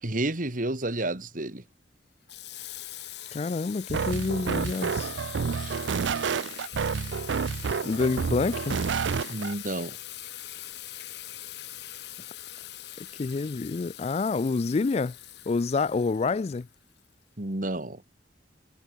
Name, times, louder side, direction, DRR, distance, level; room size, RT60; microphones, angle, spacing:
voice 1, 0.0-1.6 5.6-5.8 9.3-10.0 17.4-18.0, right 2 dB, 50° right, 2.0 m, -31 dB
Water tap faucet / Sink (filling or washing), 2.3-17.1, left 13 dB, 65° left, 4.1 m, -42 dB
voice 2, 3.3-5.1 7.8-8.8 13.2-15.1 15.5-16.7, left 4 dB, 35° left, 0.4 m, -27 dB
sound 1, 3.9-9.5, right 5 dB, 90° right, 0.5 m, -29 dB
head